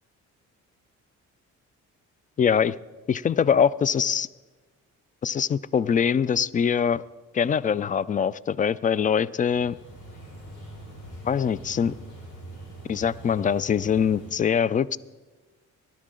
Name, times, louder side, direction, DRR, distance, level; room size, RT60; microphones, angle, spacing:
voice 1, 2.4-2.8 3.1-4.3 5.2-7.0 7.3-9.7 11.2-11.9 12.9-15.0, left 7 dB, 25° left, 20 dB, 0.3 m, -23 dB
sound 1, 9.4-14.3, right 1 dB, 75° left, 5.1 m, -43 dB
19.0 x 12.0 x 3.8 m, 1.3 s
cardioid pair, 90°, 30 cm